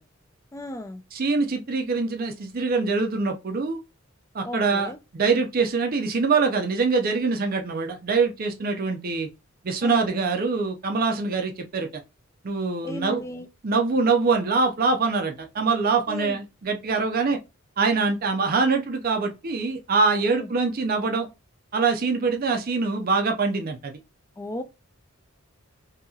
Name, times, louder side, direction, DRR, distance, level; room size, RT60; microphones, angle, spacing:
voice 1, 0.5-1.0 4.4-5.0 9.8-10.1 12.8-13.5 16.1-16.4 20.3-20.5 24.4-24.6, left 1 dB, 15° left, 0.3 m, -35 dB
voice 2, 1.1-3.8 4.3-9.3 9.6-11.9 12.4-13.2 13.6-17.4 17.8-21.3 21.7-24.0, right 4 dB, 45° right, 0.5 m, -24 dB
2.9 x 2.7 x 2.3 m
head